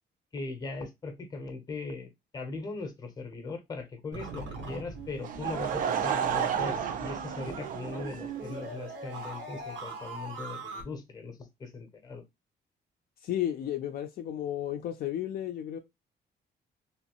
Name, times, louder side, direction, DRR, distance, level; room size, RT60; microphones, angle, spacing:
voice 1, 0.3-12.2, left 3 dB, 20° left, 0.7 m, -39 dB
sound 1, 4.1-10.8, right 3 dB, 85° right, 1.2 m, -41 dB
Laughter / Crowd, 5.2-8.7, right 8 dB, 50° right, 0.4 m, -32 dB
voice 2, 13.2-15.8, left 11 dB, 55° left, 0.4 m, -33 dB
3.0 x 2.6 x 2.9 m
cardioid pair, 175°, 18 cm